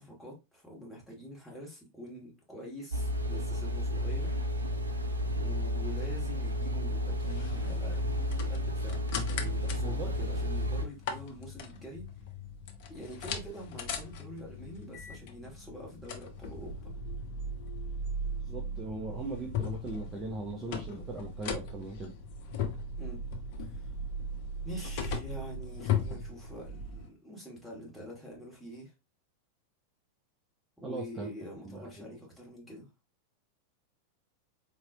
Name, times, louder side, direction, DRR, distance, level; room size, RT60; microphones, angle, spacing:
voice 1, 0.0-4.4 5.3-9.0 9.3-12.1 12.9-16.9 23.0-23.2 23.6-23.9 24.7-28.9 30.8-32.9, equal, ahead, 1.8 m, -45 dB
sound 1, 2.9-10.8, equal, 80° right, 0.4 m, -32 dB
sound 2, 7.2-27.1, left 3 dB, 50° left, 0.7 m, -38 dB
voice 2, 18.5-22.1 30.8-31.3 31.6-32.1, right 2 dB, 20° right, 0.7 m, -39 dB
4.2 x 3.0 x 2.7 m
figure-of-eight pair, 90°, 0 cm